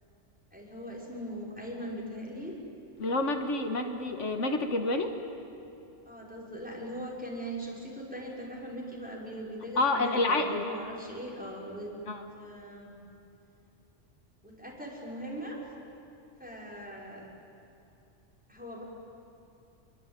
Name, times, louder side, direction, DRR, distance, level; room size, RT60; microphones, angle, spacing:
voice 1, 0.5-2.5 6.0-11.9 12.3-12.9 14.4-15.6 16.4-17.3 18.5-18.8, equal, 5° right, -4 dB, 5.9 m, -40 dB
voice 2, 3.0-5.2 9.8-10.6 12.1-12.3, left 2 dB, 80° left, 5 dB, 1.9 m, -28 dB
27.0 x 23.0 x 9.2 m, 2.8 s
omnidirectional pair, 1.2 m